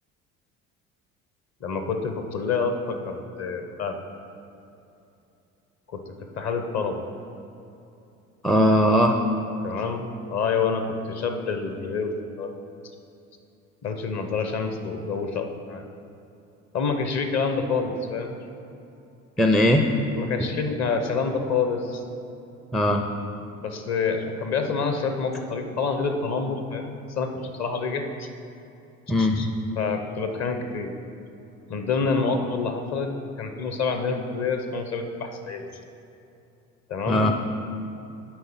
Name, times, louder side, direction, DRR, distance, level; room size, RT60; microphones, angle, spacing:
voice 1, 1.6-4.0 6.1-7.0 9.6-12.6 13.8-15.8 16.7-18.3 20.1-22.0 23.6-28.3 29.2-29.5 29.8-30.9 31.7-33.1 33.4-35.8 36.9-37.3, left 4 dB, 40° left, 6 dB, 1.0 m, -27 dB
voice 2, 8.4-9.1 19.4-19.8 22.7-23.1 29.1-29.5 37.1-37.4, left 1 dB, ahead, 3 dB, 0.4 m, -19 dB
10.5 x 3.9 x 5.6 m, 2.8 s
figure-of-eight pair, 55°, 41 cm